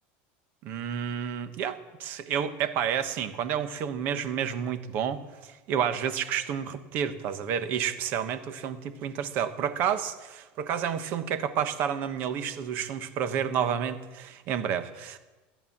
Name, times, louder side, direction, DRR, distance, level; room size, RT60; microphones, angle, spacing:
voice 1, 0.6-15.2, right 8 dB, 40° right, 10 dB, 1.1 m, -30 dB
16.5 x 11.0 x 7.3 m, 1.2 s
cardioid pair, 175°, 5 cm